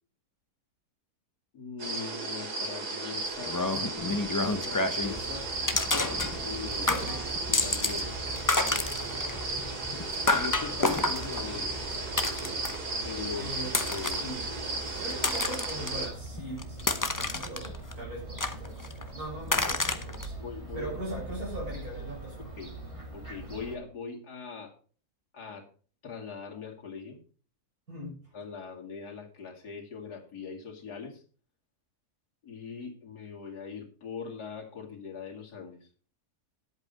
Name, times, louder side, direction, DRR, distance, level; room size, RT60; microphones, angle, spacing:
voice 1, 1.5-3.6 3.9-5.5 6.4-6.9 7.5-9.1 9.9-11.9 13.0-13.5 13.8-14.2 20.4-20.9 22.6-22.7 23.1-24.7 25.3-25.6 26.0-27.2 28.3-31.2 32.4-35.8, left 5 dB, 85° left, 0 dB, 2.8 m, -41 dB
sound 1, 1.8-16.1, right 3 dB, 90° right, 3.0 m, -35 dB
sound 2, 3.4-5.2 5.7-6.6 6.9-8.1 8.3-12.9 13.6-14.3 14.9-15.9 16.4-17.9 18.4-19.0 19.5-20.3, left 2 dB, 20° left, 0.5 m, -29 dB
Fowl / Gull seagull, 5.0-23.8, right 1 dB, 20° right, 2.5 m, -42 dB
voice 2, 6.8-7.3 13.4-14.4 15.0-20.4 20.7-22.5 27.9-28.3, right 1 dB, 65° right, -3 dB, 6.5 m, -40 dB
11.0 x 8.2 x 5.2 m, 0.40 s
omnidirectional pair, 1.7 m